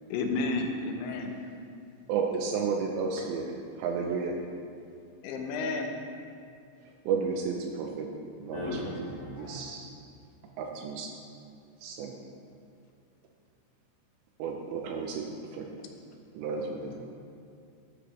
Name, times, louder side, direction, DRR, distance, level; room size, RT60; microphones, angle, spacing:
voice 1, 0.1-1.3 5.2-5.9 15.8-15.9, left 3 dB, 85° left, 3 dB, 3.1 m, -31 dB
voice 2, 2.1-4.4 7.1-8.1 8.4-8.8 9.1-9.9 10.6-11.1 11.8-12.2 14.4-15.2 15.5-15.7 16.4-16.9, right 5 dB, 85° right, 1 dB, 2.8 m, -32 dB
voice 3, 8.5-9.6 16.9-17.0, left 2 dB, 70° left, -6 dB, 2.8 m, -37 dB
13.0 x 7.9 x 3.2 m, 2.5 s
omnidirectional pair, 5.3 m